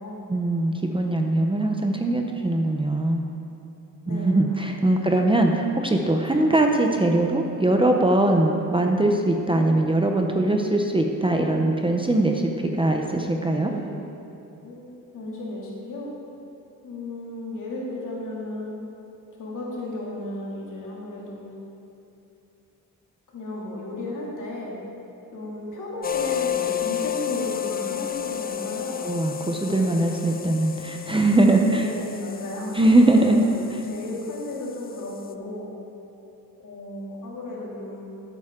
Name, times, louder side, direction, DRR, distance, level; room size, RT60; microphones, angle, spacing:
voice 1, 0.3-3.2 4.1-13.7 29.0-31.9 32.7-33.4 33.7-33.8, right 2 dB, 15° right, 2 dB, 0.7 m, -21 dB
voice 2, 4.0-5.1 13.4-13.9 14.6-16.1 16.8-18.8 19.4-21.5 23.3-24.8 25.3-29.0 29.7-30.5 31.7-35.7 36.6-38.1, left 1 dB, 65° left, -4 dB, 2.7 m, -34 dB
sound 1, 26.0-35.3, left 11 dB, 30° left, 0.4 m, -32 dB
13.0 x 8.8 x 3.7 m, 2.9 s
wide cardioid pair, 130°, 34 cm